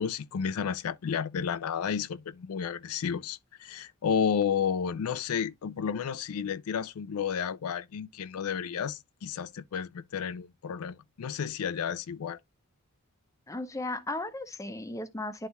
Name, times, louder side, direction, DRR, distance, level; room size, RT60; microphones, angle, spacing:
voice 1, 0.0-12.4, left 7 dB, 80° left, 0.4 m, -32 dB
voice 2, 13.5-15.5, left 2 dB, 15° left, 0.6 m, -35 dB
11.0 x 4.1 x 2.3 m
head